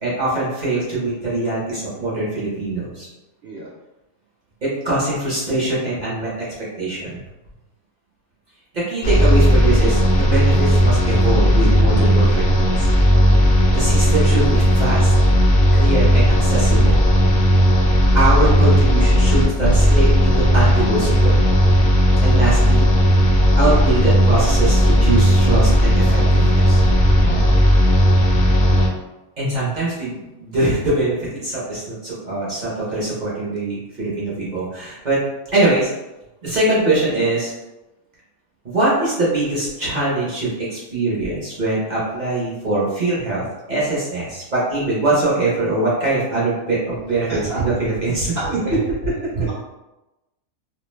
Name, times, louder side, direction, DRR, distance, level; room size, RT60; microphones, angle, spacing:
voice 1, 0.0-3.1 4.6-6.3 6.8-7.2 8.7-12.9 13.7-15.1 15.7-17.0 18.1-21.4 22.2-22.9 23.6-26.8 29.4-35.2 35.5-35.9 36.4-37.5 38.6-48.3 49.3-49.5, right 2 dB, 40° right, -7 dB, 0.7 m, -22 dB
sound 1, 9.0-28.9, equal, 70° left, 0.5 m, -15 dB
voice 2, 47.3-47.6 48.4-48.7, right 2 dB, 75° right, -6 dB, 0.6 m, -29 dB
2.5 x 2.1 x 3.1 m, 1.0 s
omnidirectional pair, 1.6 m